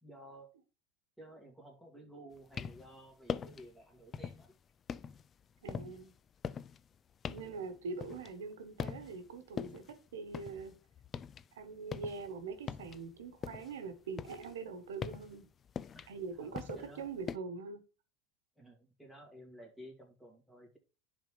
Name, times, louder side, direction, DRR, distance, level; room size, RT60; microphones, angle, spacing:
voice 1, 0.0-0.5 1.2-4.5 5.8-5.9 7.5-7.7 15.9-17.1 18.6-20.8, right 1 dB, ahead, 0 dB, 2.3 m, -54 dB
sound 1, 2.3-2.9 3.3-3.7 4.1-4.5 4.9-8.5 8.8-9.3 9.6-11.5 11.7-13.8 14.1-17.4, left 7 dB, 30° left, 0.3 m, -42 dB
voice 2, 5.6-6.1 7.3-9.8 10.1-10.7 11.5-15.4 16.1-17.8, right 4 dB, 90° right, 9 dB, 1.0 m, -43 dB
10.5 x 3.7 x 3.2 m, 0.34 s
supercardioid pair, 105°, 0 cm